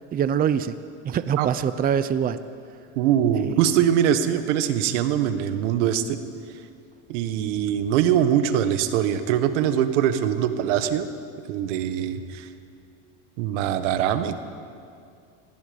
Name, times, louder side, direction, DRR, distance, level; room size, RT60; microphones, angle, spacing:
voice 1, 0.1-0.8 1.0-2.4 3.4-3.6, right 8 dB, 25° right, 13 dB, 0.6 m, -24 dB
voice 2, 2.9-6.2 7.1-11.1 11.5-12.5 13.4-14.4, right 10 dB, 85° right, 10 dB, 1.6 m, -22 dB
27.0 x 19.5 x 5.3 m, 2.4 s
supercardioid pair, 135°, 35 cm